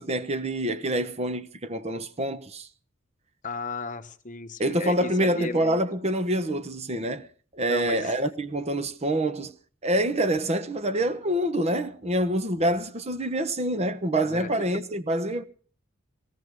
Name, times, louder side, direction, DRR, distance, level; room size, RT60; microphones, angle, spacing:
voice 1, 0.0-2.7 4.6-7.3 7.5-9.5 9.8-15.4, right 1 dB, 30° right, 1.0 m, -26 dB
voice 2, 3.4-5.8 7.7-8.1 14.2-14.8, left 3 dB, 35° left, 1.1 m, -35 dB
19.5 x 15.0 x 4.6 m
head